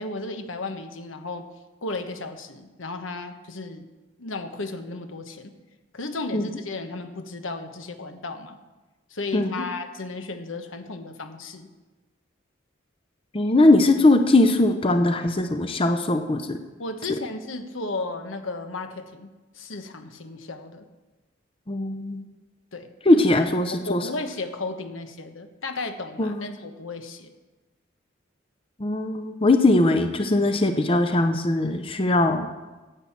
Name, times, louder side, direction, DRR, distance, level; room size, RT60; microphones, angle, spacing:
voice 1, 0.0-1.5 1.8-3.8 4.2-5.5 5.9-8.6 9.1-11.7 16.8-19.3 19.5-20.8 22.7-23.3 23.7-27.3, left 3 dB, 85° left, 7 dB, 1.2 m, -34 dB
voice 2, 9.3-9.7 13.3-16.6 21.7-22.2 23.1-24.0 26.2-26.5 28.8-32.5, left 2 dB, 30° left, 7 dB, 0.7 m, -20 dB
10.5 x 8.4 x 7.2 m, 1.2 s
head